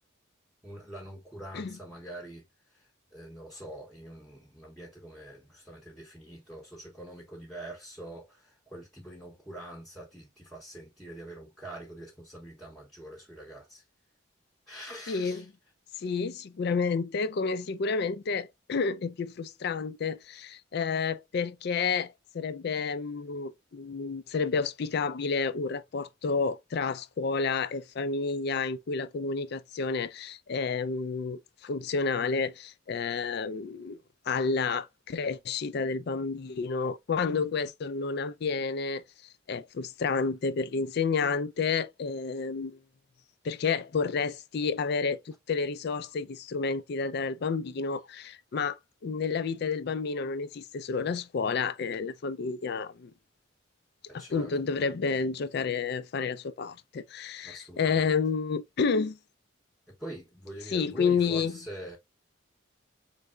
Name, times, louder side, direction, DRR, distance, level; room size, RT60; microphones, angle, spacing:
voice 1, 0.6-13.8 14.7-15.5 54.1-54.6 57.4-58.2 59.9-62.0, right 1 dB, ahead, 0.8 m, -44 dB
voice 2, 15.1-15.4 16.0-34.0 34.3-39.0 39.5-42.8 43.4-48.8 49.0-53.1 54.1-59.2 60.7-61.6, left 5 dB, 55° left, 0.4 m, -30 dB
4.6 x 3.3 x 2.3 m
head